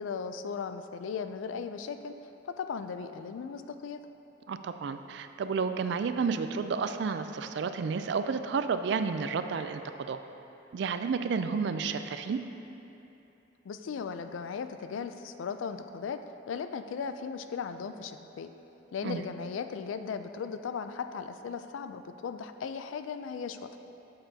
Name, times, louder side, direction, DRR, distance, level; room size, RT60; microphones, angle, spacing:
voice 1, 0.0-2.1 2.4-4.0 13.6-16.2 16.5-18.5 18.9-23.8, left 6 dB, 85° left, 9 dB, 0.4 m, -37 dB
voice 2, 4.5-10.2 10.7-12.4 19.0-19.2, right 5 dB, 65° right, 9 dB, 0.3 m, -31 dB
8.9 x 6.9 x 2.8 m, 3.0 s
head